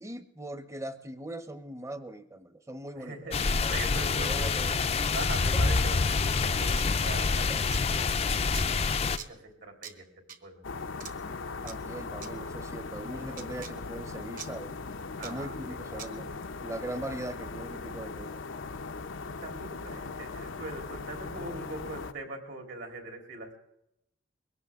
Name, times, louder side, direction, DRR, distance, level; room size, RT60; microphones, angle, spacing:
voice 1, 0.0-3.3 3.6-4.7 7.5-7.7 11.4-14.7 15.2-18.4, right 1 dB, 15° right, 12 dB, 0.8 m, -40 dB
voice 2, 2.9-10.1 10.4-10.6 10.9-11.7 15.2-15.5 15.9-16.1 19.1-23.6, right 2 dB, 70° right, 3 dB, 3.7 m, -42 dB
sound 1, 3.3-9.2, left 4 dB, 30° left, 0.5 m, -27 dB
sound 2, 6.7-6.9 7.7-7.8 8.5-8.7 9.2-9.3 9.8-9.9 10.3-10.4 11.0-11.1 11.7-11.8 12.2-12.3 13.4-13.7 14.4-14.5 15.2-15.3 16.0-16.1, right 7 dB, 45° right, 1.1 m, -42 dB
sound 3, 10.6-22.1, left 4 dB, 85° left, 0.8 m, -39 dB
22.0 x 17.5 x 3.7 m, 0.81 s
head